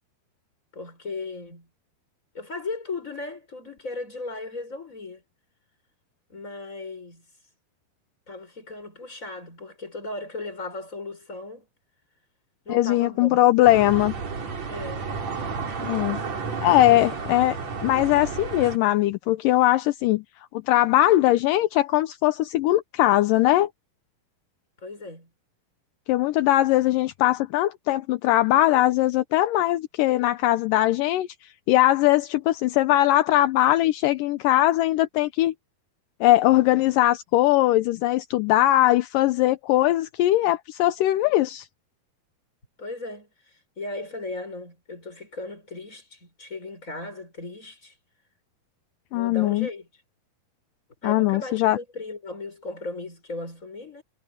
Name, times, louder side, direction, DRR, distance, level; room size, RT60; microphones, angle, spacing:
voice 1, 0.7-1.7 2.3-5.2 6.3-7.2 8.3-11.7 12.6-13.4 14.7-15.0 16.3-17.1 24.8-25.3 42.8-47.9 49.1-49.9 51.0-54.0, left 2 dB, 20° left, 6.8 m, -37 dB
voice 2, 12.7-14.1 15.8-16.2 16.6-20.2 20.5-23.7 26.1-31.3 31.7-35.5 36.2-41.7 49.1-49.7 51.0-51.8, left 15 dB, 80° left, 2.1 m, -20 dB
sound 1, 13.6-18.8, right 5 dB, 45° right, 4.6 m, -32 dB
omnidirectional pair, 4.5 m